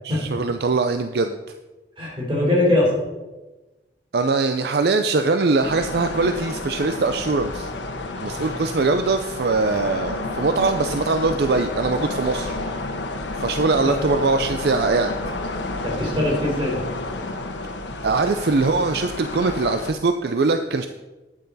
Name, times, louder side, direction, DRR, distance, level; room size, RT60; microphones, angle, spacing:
voice 1, 0.0-1.4 4.1-7.7 8.2-12.6 13.4-15.1 18.0-20.9, right 3 dB, 60° right, 8 dB, 0.5 m, -22 dB
voice 2, 2.0-2.9 8.3-8.4 13.8-13.9 15.8-16.8, left 1 dB, 30° right, -4 dB, 4.0 m, -21 dB
sound 1, 5.6-19.9, left 2 dB, 90° left, 1.1 m, -30 dB
12.0 x 8.9 x 4.1 m, 1.1 s
head